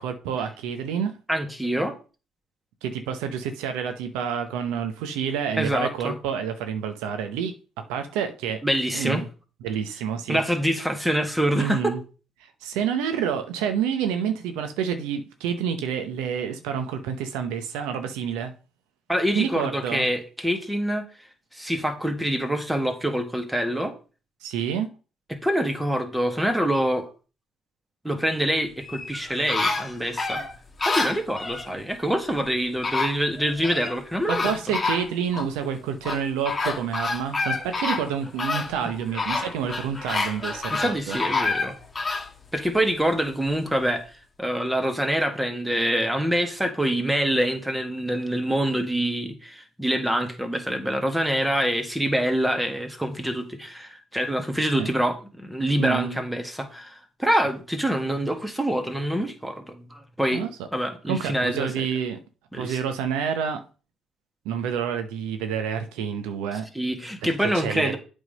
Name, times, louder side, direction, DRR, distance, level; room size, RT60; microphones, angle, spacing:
voice 1, 0.0-1.1 2.8-8.6 8.9-9.2 9.6-10.4 11.6-12.0 12.6-18.5 19.3-20.1 24.4-24.9 34.3-41.2 54.8-54.9 55.8-56.2 60.3-60.5 61.1-62.2 62.5-63.6 64.4-66.6 67.5-68.0, right 8 dB, 85° right, 0.8 m, -28 dB
voice 2, 1.3-2.0 5.5-6.2 8.6-9.2 10.3-11.9 19.1-21.1 21.5-24.0 25.3-27.1 28.0-30.5 30.9-34.5 40.7-41.8 42.5-60.4 60.7-61.9 62.5-62.8 66.8-68.0, equal, 5° right, 1.9 m, -25 dB
sound 1, 28.8-31.7 32.5-32.6 32.8-34.0 34.3-35.5 36.0-42.3 42.8-42.9, left 3 dB, 25° left, 1.8 m, -28 dB
8.2 x 3.7 x 5.3 m
supercardioid pair, 60°, 0 cm